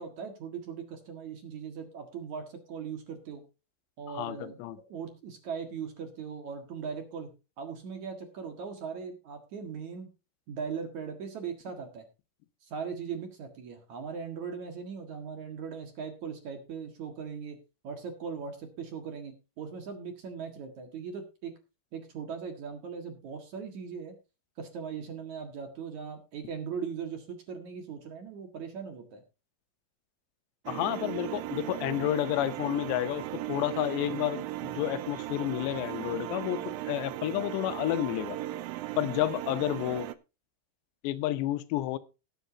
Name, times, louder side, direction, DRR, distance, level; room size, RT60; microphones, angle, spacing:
voice 1, 0.0-3.4 4.0-4.6 4.9-7.3 7.6-10.1 10.5-12.0 12.6-17.6 17.8-21.5 21.9-24.2 24.6-29.2, right 6 dB, 55° right, 5 dB, 2.6 m, -39 dB
voice 2, 4.1-4.8 30.7-33.2 33.5-38.4 39.0-40.1 41.0-42.0, left 14 dB, 85° left, 13 dB, 3.0 m, -30 dB
sound 1, 30.7-40.2, right 14 dB, 85° right, 2.0 m, -37 dB
19.5 x 8.1 x 2.7 m, 0.29 s
omnidirectional pair, 4.9 m